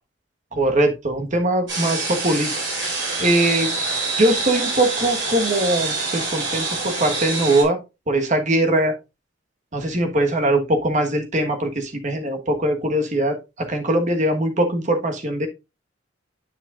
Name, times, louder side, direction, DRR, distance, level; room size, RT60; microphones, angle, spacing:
voice 1, 0.5-2.5 3.2-3.7 4.2-7.8 8.1-8.9 9.7-15.5, right 1 dB, 40° right, 5 dB, 1.4 m, -21 dB
sound 1, 1.7-7.6, right 3 dB, 75° right, 4.6 m, -26 dB
9.8 x 6.0 x 2.5 m, 0.26 s
head